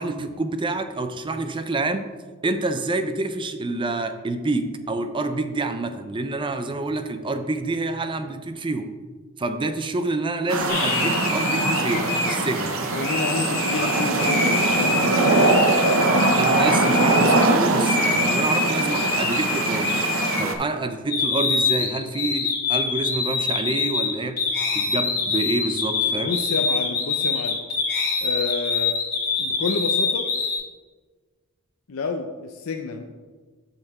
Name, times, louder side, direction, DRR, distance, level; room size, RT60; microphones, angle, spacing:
voice 1, 0.0-2.1 2.4-8.9 9.4-12.7 16.2-19.9 20.4-24.4 24.7-26.3, right 2 dB, 25° right, 9 dB, 0.5 m, -27 dB
sound 1, 10.5-20.5, right 2 dB, 65° right, 0.8 m, -22 dB
sound 2, 10.7-17.5 17.8-20.7 21.1-30.6, left 4 dB, 50° left, 2.2 m, -25 dB
voice 2, 12.9-15.0 26.1-27.6 28.2-29.0 29.4-30.3 31.9-33.0, left 4 dB, 70° left, 4 dB, 0.5 m, -29 dB
7.8 x 6.7 x 3.6 m, 1.4 s
head